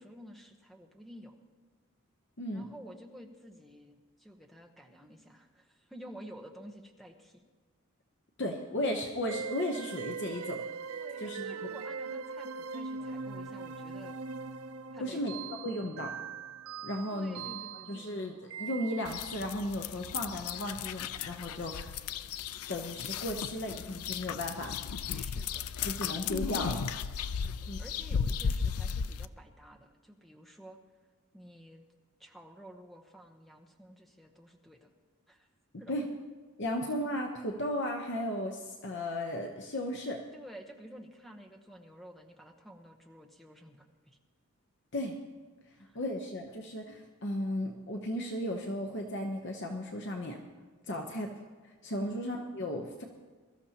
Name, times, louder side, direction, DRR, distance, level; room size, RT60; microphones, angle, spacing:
voice 1, 0.0-1.4 2.5-7.4 10.9-14.2 14.9-15.5 17.1-18.1 25.1-25.7 26.0-26.3 27.3-30.8 31.3-31.8 32.2-34.9 35.3-35.5 35.8-35.9 40.3-44.2 45.8-46.0 50.9-51.2 52.1-52.3, equal, ahead, 3 dB, 0.9 m, -51 dB
voice 2, 2.4-2.7 8.4-10.6 11.2-11.7 15.0-15.3 15.6-16.1 16.8-17.4 17.9-22.0 22.7-24.7 25.8-26.9 27.7-27.8 35.9-36.0 36.6-40.2 44.9-45.2 45.9-50.4 50.9-51.3 51.8-53.0, left 1 dB, 50° left, 2 dB, 0.9 m, -35 dB
sound 1, 9.3-19.4, right 5 dB, 75° right, 0.5 m, -41 dB
sound 2, 19.0-29.3, left 6 dB, 80° left, 0.4 m, -35 dB
22.5 x 13.0 x 2.9 m, 1.4 s
head